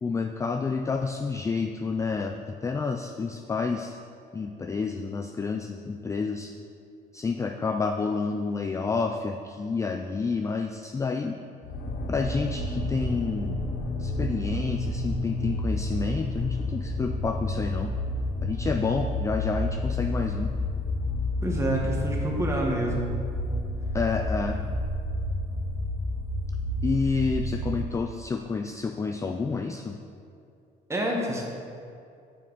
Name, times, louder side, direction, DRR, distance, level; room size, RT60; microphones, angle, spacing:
voice 1, 0.0-4.0 4.3-6.5 7.1-11.4 12.1-13.6 14.0-17.9 18.4-20.5 23.9-24.6 26.8-30.0, left 4 dB, 20° left, 5 dB, 0.3 m, -29 dB
sound 1, 11.6-27.9, left 1 dB, 55° left, 0.9 m, -30 dB
voice 2, 21.4-23.2 30.9-31.4, right 1 dB, 15° right, -1 dB, 1.4 m, -28 dB
7.3 x 6.7 x 3.9 m, 2.5 s
cardioid pair, 110°, 17 cm